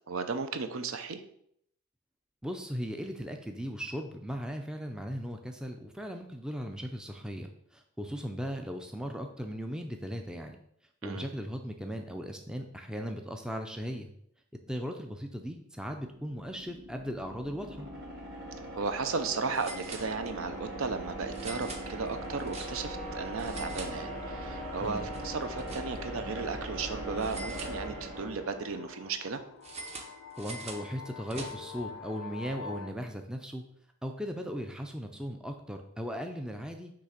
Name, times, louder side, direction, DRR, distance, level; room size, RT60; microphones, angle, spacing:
voice 1, 0.1-1.2 11.0-11.3 18.7-29.4, right 4 dB, 65° right, 9 dB, 0.6 m, -35 dB
voice 2, 2.4-10.6 11.0-14.1 14.7-17.9 24.8-25.1 30.4-33.6 34.0-36.9, equal, 5° right, 4 dB, 0.4 m, -37 dB
sound 1, 16.1-29.1, right 1 dB, 45° right, 2.0 m, -40 dB
sound 2, 18.3-18.5 18.8-18.9 19.5-20.6 21.3-23.0 23.3-24.5 24.8-26.2 27.2-28.3 29.6-31.9, right 3 dB, 30° right, 0.7 m, -45 dB
sound 3, 24.2-32.9, left 5 dB, 70° left, 0.4 m, -48 dB
6.2 x 3.2 x 5.8 m, 0.71 s
head